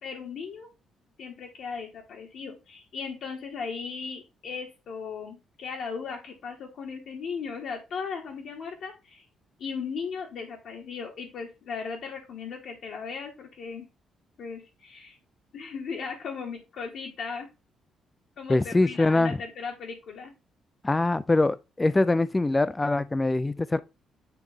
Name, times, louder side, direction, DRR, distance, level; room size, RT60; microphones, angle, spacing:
voice 1, 0.0-0.7 1.2-9.2 9.6-13.9 14.4-15.2 15.5-17.5 18.4-20.3, left 5 dB, 70° left, 1.4 m, -37 dB
voice 2, 18.5-19.4 20.8-23.8, left 2 dB, 20° left, 0.4 m, -23 dB
9.1 x 3.2 x 3.5 m
cardioid pair, 90°, 0 cm